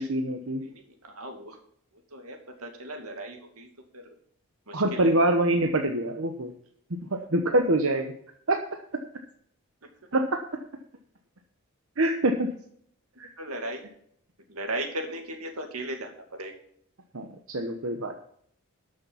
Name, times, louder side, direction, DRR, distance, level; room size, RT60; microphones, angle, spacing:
voice 1, 0.0-0.7 4.7-6.5 7.3-8.1 8.5-8.6 10.1-10.4 12.0-12.5 13.2-13.3 17.1-18.1, right 1 dB, 70° right, 4 dB, 1.1 m, -25 dB
voice 2, 0.6-1.6 2.1-3.7 3.9-4.1 4.7-5.1 13.4-13.8 14.5-16.5, right 1 dB, 90° right, 4 dB, 2.4 m, -37 dB
12.5 x 6.7 x 5.8 m, 0.67 s
head